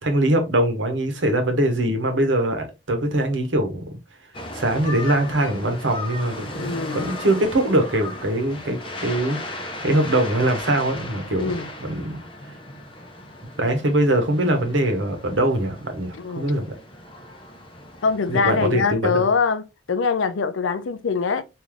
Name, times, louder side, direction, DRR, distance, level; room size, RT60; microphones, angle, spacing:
voice 1, 0.0-3.8 4.5-9.4 9.8-11.5 11.8-12.2 13.6-16.7 18.3-19.3, right 1 dB, 80° right, 1.0 m, -22 dB
sound 1, 4.3-18.8, left 1 dB, 25° left, 0.6 m, -36 dB
voice 2, 6.5-7.1 11.4-11.7 16.1-16.5 18.0-21.4, left 5 dB, 90° left, 0.5 m, -23 dB
3.7 x 2.6 x 3.1 m
head